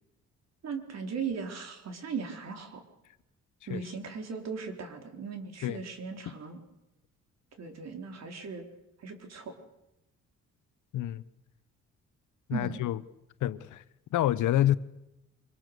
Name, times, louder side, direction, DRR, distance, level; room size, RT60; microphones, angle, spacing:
voice 1, 0.6-2.8 3.7-6.6 7.6-8.6 9.0-9.5 12.5-12.8, right 5 dB, 60° right, 4.2 m, -38 dB
voice 2, 12.5-13.0 13.4-13.8 14.1-14.8, left 12 dB, 80° left, 1.0 m, -27 dB
25.0 x 22.5 x 6.9 m
cardioid pair, 90°, 30 cm